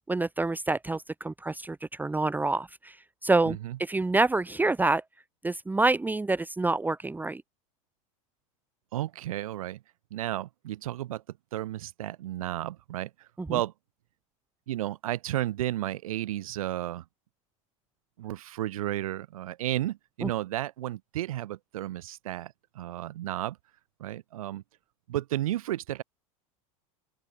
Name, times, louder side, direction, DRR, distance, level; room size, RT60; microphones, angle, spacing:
voice 1, 0.1-3.0 3.2-5.0 5.4-7.4 13.4-13.5 20.2-20.3, right 2 dB, 10° right, 1.2 m, -27 dB
voice 2, 3.4-3.8 8.9-9.8 10.1-13.7 14.7-17.0 18.2-23.6 24.0-24.6 25.1-26.0, right 14 dB, 85° right, 1.5 m, -33 dB
open air
hypercardioid pair, 105°, 18 cm